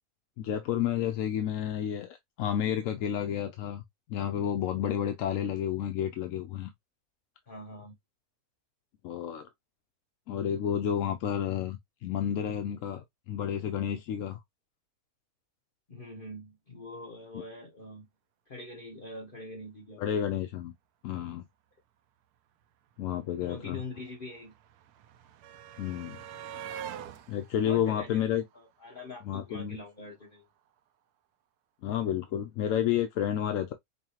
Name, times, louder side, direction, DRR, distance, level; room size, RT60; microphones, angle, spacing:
voice 1, 0.4-3.8 4.1-6.7 9.0-9.5 10.3-14.4 17.3-17.4 20.0-20.7 21.0-21.4 23.0-23.8 25.8-26.2 27.3-28.4 29.3-29.8 31.8-33.7, left 9 dB, 70° left, 0.9 m, -31 dB
voice 2, 7.5-8.0 15.9-18.1 18.5-20.2 23.4-24.5 26.5-26.6 27.6-30.4, left 2 dB, 40° left, 1.1 m, -44 dB
sound 1, 22.6-22.7 22.9-29.1 30.3-30.4 30.7-30.8, right 9 dB, 85° right, 1.1 m, -46 dB
5.6 x 2.1 x 2.9 m
omnidirectional pair, 1.6 m